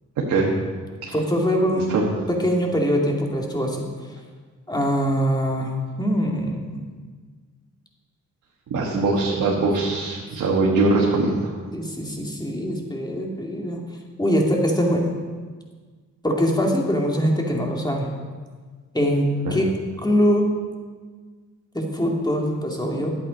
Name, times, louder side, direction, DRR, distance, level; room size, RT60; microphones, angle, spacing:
voice 1, 1.1-1.9 2.3-3.9 4.7-5.7 6.0-6.8 8.7-9.0 11.7-13.8 14.2-15.1 16.2-18.1 18.9-19.7 20.0-20.5 21.7-23.1, equal, 15° left, 0 dB, 2.3 m, -23 dB
voice 2, 8.7-11.5 19.4-19.6, right 3 dB, 85° right, -3 dB, 1.4 m, -21 dB
11.5 x 8.4 x 5.2 m, 1.5 s
cardioid pair, 70°, 30 cm